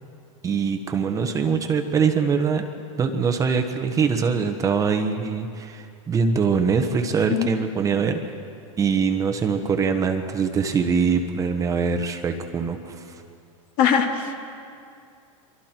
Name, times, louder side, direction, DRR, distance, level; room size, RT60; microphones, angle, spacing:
voice 1, 0.4-2.7 3.0-8.3 8.8-13.2, right 5 dB, 20° right, 5 dB, 1.1 m, -23 dB
voice 2, 13.8-14.3, left 7 dB, 50° left, 3 dB, 2.3 m, -20 dB
25.5 x 24.0 x 4.5 m, 2.5 s
supercardioid pair, 145°, 17 cm